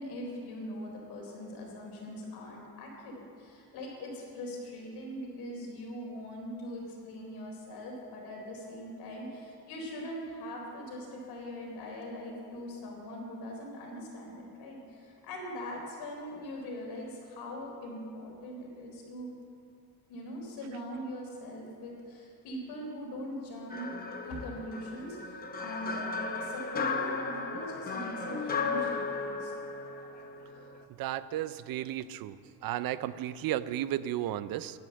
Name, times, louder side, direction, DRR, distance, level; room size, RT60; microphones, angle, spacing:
voice 1, 0.0-19.3 20.1-23.9 24.2-29.5, equal, 80° left, -1 dB, 4.1 m, -41 dB
sound 1, 23.7-30.8, left 4 dB, 25° left, 0.8 m, -35 dB
voice 2, 31.0-32.4 32.6-34.8, right 12 dB, 65° right, 15 dB, 0.6 m, -33 dB
11.5 x 11.5 x 7.8 m, 2.5 s
cardioid pair, 180°, 38 cm